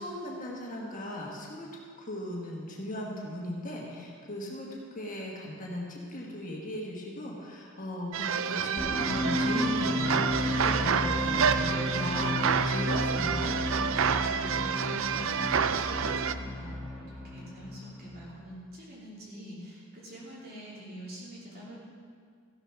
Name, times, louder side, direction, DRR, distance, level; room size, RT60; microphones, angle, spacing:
voice 1, 0.0-1.7 2.0-13.5, left 1 dB, 40° left, -3 dB, 1.7 m, -37 dB
sound 1, 8.1-16.3, right 7 dB, 65° right, 0.4 m, -29 dB
sound 2, 8.8-18.4, left 1 dB, ahead, 2.0 m, -33 dB
voice 2, 14.0-16.8 17.1-21.8, equal, 45° right, -6 dB, 3.2 m, -46 dB
14.5 x 6.9 x 6.1 m, 2.1 s
head